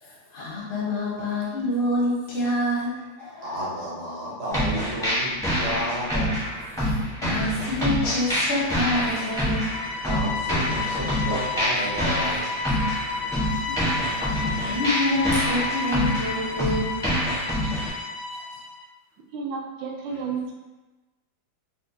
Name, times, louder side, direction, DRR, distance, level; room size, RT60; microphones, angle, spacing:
voice 1, 0.0-3.5 7.2-9.8 10.8-10.9 13.5-14.0 14.6-17.3 17.8-17.9 18.3-18.4, left 1 dB, 50° left, -6 dB, 0.6 m, -27 dB
voice 2, 3.4-6.4 10.0-12.6, equal, 50° right, -7 dB, 0.7 m, -32 dB
sound 1, 4.5-17.9, equal, 5° left, 0.4 m, -26 dB
sound 2, 8.0-18.8, left 4 dB, 75° left, 1.3 m, -32 dB
voice 3, 19.3-20.5, right 5 dB, 75° right, 0 dB, 1.2 m, -31 dB
4.3 x 2.1 x 2.7 m, 1.1 s
omnidirectional pair, 2.2 m